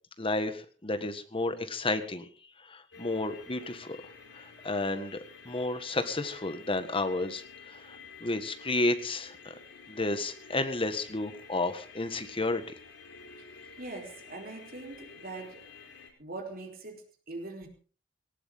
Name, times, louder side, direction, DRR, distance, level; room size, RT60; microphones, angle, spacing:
voice 1, 0.2-2.2 2.7-4.0 4.4-5.2 5.4-7.4 8.2-9.5 9.9-12.6, left 2 dB, 30° left, 9 dB, 1.6 m, -31 dB
sound 1, 2.9-16.1, left 5 dB, 80° left, 4.8 m, -51 dB
voice 2, 13.8-15.7 16.2-17.7, right 2 dB, 50° right, 3 dB, 3.8 m, -42 dB
18.5 x 18.0 x 3.7 m, 0.38 s
head